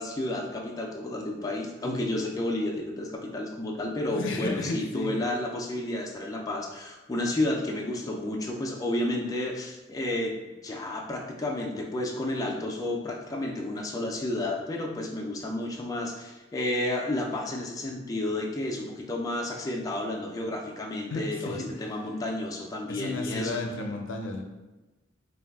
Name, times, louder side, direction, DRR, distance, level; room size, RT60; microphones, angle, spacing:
voice 1, 0.0-10.3 10.6-23.6, left 1 dB, 20° left, 0 dB, 0.3 m, -31 dB
voice 2, 4.1-5.2 21.1-21.7 22.9-24.4, left 2 dB, 90° left, 3 dB, 0.5 m, -33 dB
2.6 x 2.3 x 3.4 m, 1.1 s
head